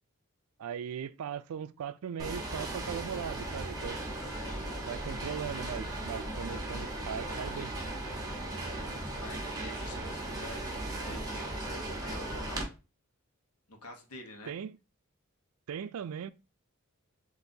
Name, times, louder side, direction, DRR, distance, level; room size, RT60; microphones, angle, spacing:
voice 1, 0.6-4.0 4.8-7.7 14.5-14.8 15.7-16.3, right 8 dB, 80° right, 0.4 m, -39 dB
sound 1, 2.2-12.6, right 1 dB, 20° right, 1.0 m, -37 dB
voice 2, 4.2-4.7 8.3-12.6 13.7-14.6, left 1 dB, 90° left, 1.0 m, -48 dB
6.8 x 2.6 x 2.7 m
head